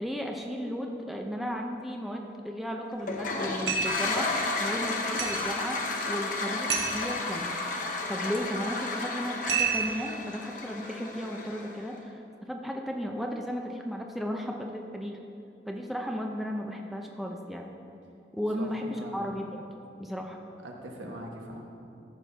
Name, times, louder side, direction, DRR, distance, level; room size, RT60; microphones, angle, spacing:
voice 1, 0.0-7.5 8.1-15.2 15.7-17.7 18.3-19.7 20.0-20.4, equal, ahead, 1 dB, 0.4 m, -35 dB
Toilet flush, 3.0-11.9, left 3 dB, 45° left, 0.8 m, -32 dB
sound 1, 3.7-4.1 5.2-5.5 6.7-7.0 9.5-10.1, right 6 dB, 65° right, 1.2 m, -29 dB
voice 2, 18.6-19.2 20.6-21.7, right 1 dB, 85° right, 0 dB, 1.3 m, -42 dB
14.0 x 5.7 x 3.5 m, 2.6 s
head